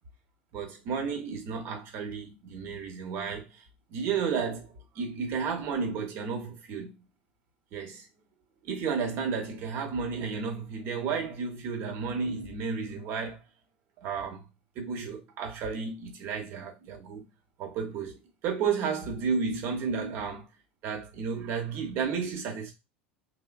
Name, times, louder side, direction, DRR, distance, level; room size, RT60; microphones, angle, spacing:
voice 1, 0.5-3.6 3.9-6.9 7.7-8.1 8.6-13.4 14.0-14.4 14.7-17.3 17.6-20.5 20.8-22.7, right 5 dB, 45° right, 0.9 m, -32 dB
3.1 x 2.1 x 2.2 m
figure-of-eight pair, 75°, 6 cm